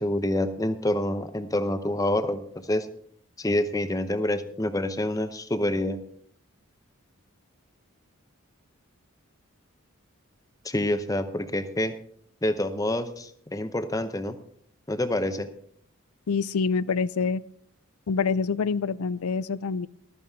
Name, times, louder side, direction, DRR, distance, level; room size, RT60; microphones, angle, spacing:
voice 1, 0.0-2.9 3.4-6.0 10.6-11.9 12.4-14.4 14.9-15.5, left 1 dB, 15° left, 10 dB, 0.7 m, -27 dB
voice 2, 16.3-17.4 18.1-19.9, left 5 dB, 90° left, 19 dB, 0.5 m, -26 dB
14.5 x 12.5 x 3.6 m, 0.64 s
head